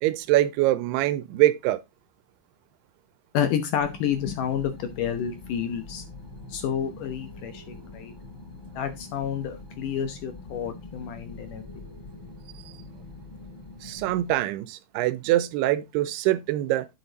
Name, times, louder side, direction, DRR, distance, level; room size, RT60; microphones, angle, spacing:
voice 1, 0.0-1.8 13.8-16.9, right 15 dB, 85° right, 2.7 m, -24 dB
voice 2, 3.3-6.0 6.5-8.1 8.8-11.6, left 8 dB, 70° left, 2.1 m, -29 dB
sound 1, 3.8-14.3, left 2 dB, 30° left, 5.8 m, -44 dB
9.5 x 6.1 x 4.0 m
omnidirectional pair, 4.6 m